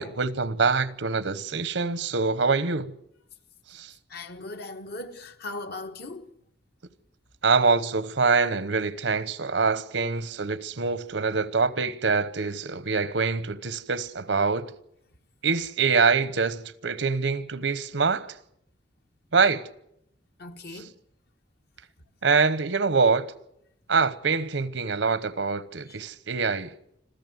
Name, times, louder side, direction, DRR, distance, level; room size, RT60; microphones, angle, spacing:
voice 1, 0.0-3.0 3.7-3.9 7.4-14.7 15.4-18.4 19.3-19.7 20.7-20.9 22.2-23.3 23.9-26.7, right 4 dB, 80° right, 1.0 m, -25 dB
voice 2, 4.1-6.3 20.4-20.9, left 2 dB, 60° left, 1.5 m, -38 dB
26.5 x 14.5 x 7.9 m
head